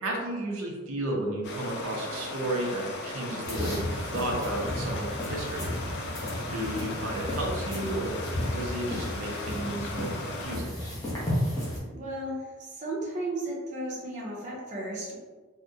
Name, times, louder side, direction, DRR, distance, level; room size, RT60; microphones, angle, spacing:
voice 1, 0.0-5.7 6.5-8.1 8.5-10.8, right 1 dB, 85° right, -1 dB, 0.6 m, -33 dB
Stream, 1.4-10.6, left 2 dB, 50° left, 0.4 m, -37 dB
sound 1, 3.4-11.8, left 1 dB, 15° left, 0.7 m, -33 dB
voice 2, 11.9-12.4 12.8-15.2, right 1 dB, 35° right, -4 dB, 0.6 m, -34 dB
3.6 x 2.1 x 2.6 m, 1.4 s
head